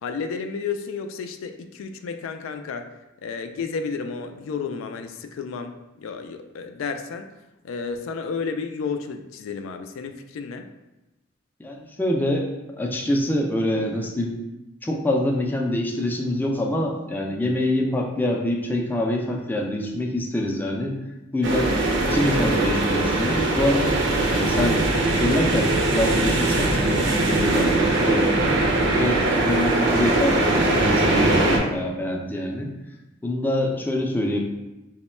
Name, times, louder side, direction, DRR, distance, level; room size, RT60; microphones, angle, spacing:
voice 1, 0.0-2.9 3.2-7.3 7.6-10.7, left 5 dB, 90° left, 7 dB, 0.3 m, -32 dB
voice 2, 11.6-12.5 12.8-14.4 14.8-21.0 21.3-21.7 22.0-24.0 24.3-24.8 25.1-28.6 28.9-32.7 33.2-34.4, left 1 dB, 10° left, 0 dB, 0.3 m, -25 dB
sound 1, 21.4-31.6, right 2 dB, 65° right, 0.5 m, -21 dB
3.1 x 2.1 x 4.2 m, 1.0 s
head